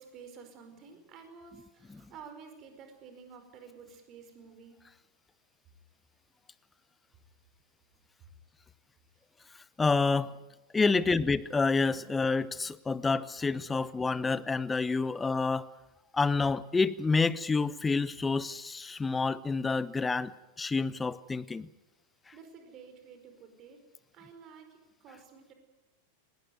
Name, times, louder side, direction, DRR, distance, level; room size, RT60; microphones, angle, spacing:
voice 1, 0.0-4.8 22.3-23.8 24.1-25.5, right 6 dB, 35° right, 5.0 m, -51 dB
voice 2, 9.8-10.4 10.7-15.7 16.1-20.3 20.6-21.7, left 4 dB, 15° left, 0.9 m, -28 dB
20.5 x 18.5 x 9.5 m
figure-of-eight pair, 90°, 0 cm